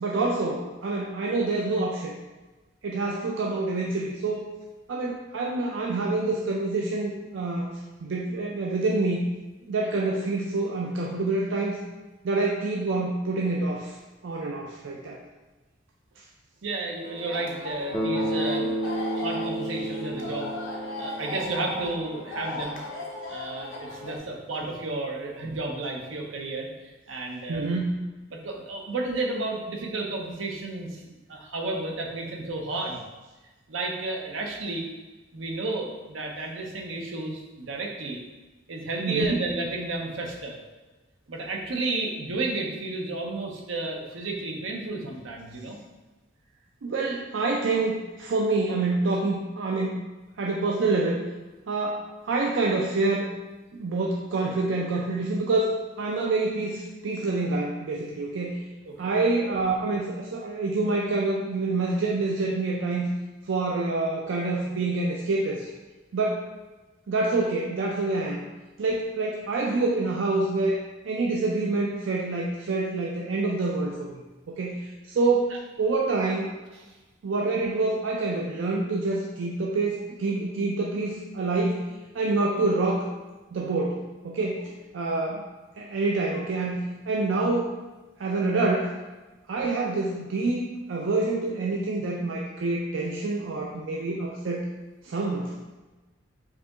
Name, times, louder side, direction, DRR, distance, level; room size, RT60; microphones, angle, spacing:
voice 1, 0.0-2.1 2.8-4.5 4.9-7.7 8.0-9.2 9.7-11.8 12.2-14.0 14.2-15.2 27.5-28.0 39.0-39.4 46.8-50.0 50.4-51.2 51.7-53.3 53.7-58.6 59.0-63.1 63.4-65.7 66.1-66.5 67.1-68.4 68.8-70.8 71.1-76.5 77.2-81.9 82.1-83.0 83.5-85.4 85.8-86.8 87.1-87.8 88.2-89.0 89.5-94.7 95.0-95.5, right 3 dB, 75° right, -1 dB, 0.4 m, -27 dB
voice 2, 16.6-22.8 23.3-27.7 28.3-33.0 33.7-34.9 35.3-38.2 38.7-40.6 41.3-45.8 58.8-59.1, right 2 dB, 90° right, 1 dB, 0.8 m, -32 dB
sound 1, 17.0-24.2, left 2 dB, 80° left, 0.8 m, -37 dB
Bass guitar, 17.9-21.9, right 1 dB, 20° left, 0.5 m, -31 dB
4.7 x 2.9 x 3.6 m, 1.2 s
head